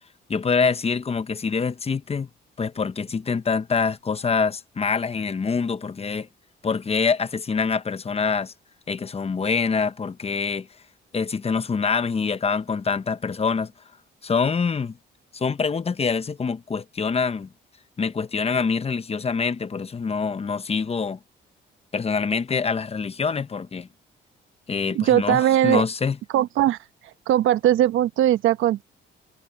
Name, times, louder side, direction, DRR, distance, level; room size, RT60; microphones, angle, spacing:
voice 1, 0.3-2.3 2.6-6.3 6.6-8.5 8.9-10.7 11.1-13.7 14.2-15.0 15.3-17.5 18.0-21.2 21.9-23.9 24.7-26.2, left 5 dB, 30° left, 0.9 m, -25 dB
voice 2, 24.9-25.8 26.3-26.8 27.3-28.8, right 12 dB, 85° right, 1.1 m, -19 dB
cardioid pair, 90°, 20 cm